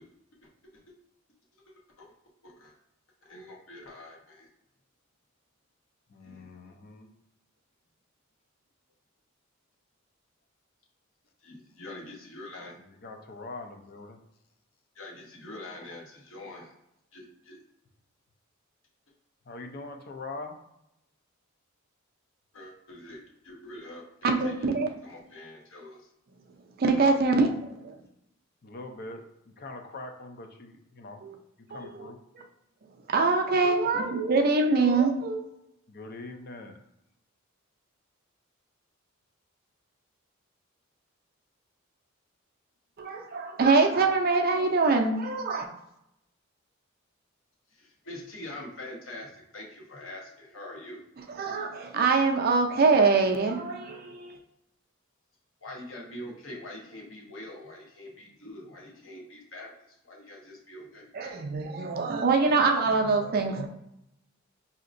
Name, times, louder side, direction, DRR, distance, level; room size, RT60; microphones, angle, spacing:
voice 1, 2.4-2.7 3.2-4.5 6.2-6.7 11.4-12.7 14.9-16.7 17.1-17.6 22.5-24.5 25.0-26.1 47.7-51.0 55.6-61.4, left 1 dB, 70° left, -2 dB, 1.0 m, -44 dB
voice 2, 6.1-7.1 12.9-14.2 19.5-20.6 28.6-31.2 31.7-32.2 35.9-36.8, left 2 dB, 45° left, 4 dB, 0.5 m, -42 dB
voice 3, 24.2-24.9 26.8-27.9 31.2-31.4 31.7-32.1 33.1-35.4 43.0-45.7 51.4-54.4 61.1-63.7, right 4 dB, 45° right, 3 dB, 0.5 m, -24 dB
5.0 x 2.8 x 2.5 m, 0.83 s
head